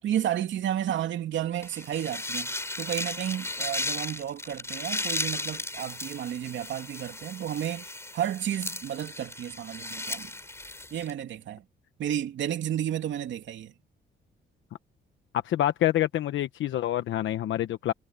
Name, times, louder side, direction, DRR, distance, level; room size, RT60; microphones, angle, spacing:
voice 1, 0.0-10.3 10.9-11.6 12.0-13.7, right 10 dB, 70° right, 2.7 m, -32 dB
sound 1, 1.6-11.1, left 2 dB, 15° left, 5.0 m, -35 dB
voice 2, 15.4-17.9, left 12 dB, 75° left, 1.1 m, -27 dB
cardioid pair, 90°, 20 cm